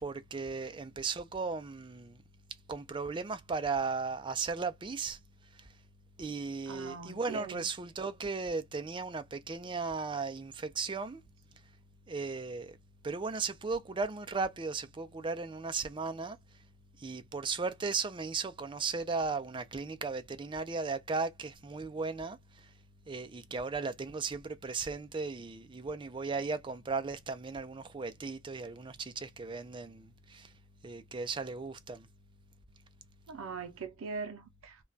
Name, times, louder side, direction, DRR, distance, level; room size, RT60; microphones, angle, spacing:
voice 1, 0.0-2.2 2.7-5.2 6.2-11.2 12.1-12.8 13.0-16.4 17.0-22.4 23.1-30.5 30.8-32.1, right 4 dB, 25° right, 0.4 m, -36 dB
voice 2, 6.7-7.7 33.3-34.8, right 5 dB, 90° right, 0.5 m, -41 dB
2.3 x 2.1 x 3.8 m
head